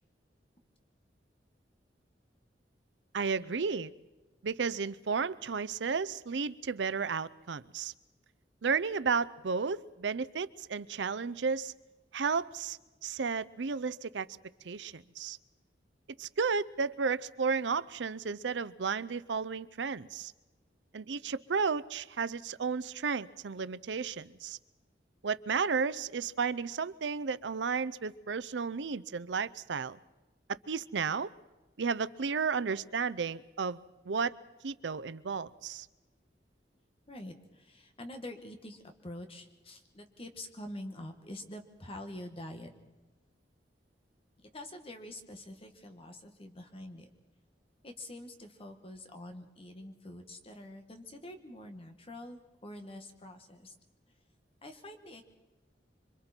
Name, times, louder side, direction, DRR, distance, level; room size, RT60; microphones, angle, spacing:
voice 1, 3.1-3.9 4.4-7.9 8.6-11.7 12.1-14.3 14.6-15.4 16.2-20.3 20.9-24.6 25.2-30.0 30.7-31.3 31.8-34.3 34.6-35.9, right 5 dB, 85° right, 16 dB, 0.6 m, -33 dB
voice 2, 37.1-42.7 44.4-47.1 47.8-53.7 54.6-55.2, left 1 dB, 35° left, 6 dB, 1.9 m, -46 dB
26.0 x 25.0 x 4.5 m, 1.1 s
head